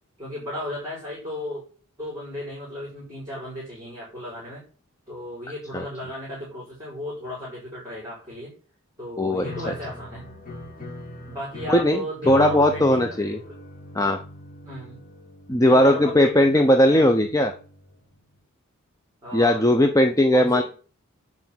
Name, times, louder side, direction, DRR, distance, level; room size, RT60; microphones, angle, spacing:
voice 1, 0.2-1.6 2.0-4.6 5.1-8.5 9.0-10.3 11.3-13.2 13.5-13.6 14.6-15.0 15.6-17.1 19.2-19.6 20.3-20.6, equal, 15° right, -5 dB, 5.4 m, -35 dB
voice 2, 9.2-9.7 11.7-13.4 13.9-14.2 15.5-17.5 19.3-20.6, left 1 dB, 15° left, 5 dB, 0.7 m, -18 dB
sound 1, 9.4-17.7, left 1 dB, 40° left, 2.9 m, -40 dB
9.5 x 4.7 x 7.8 m, 0.40 s
head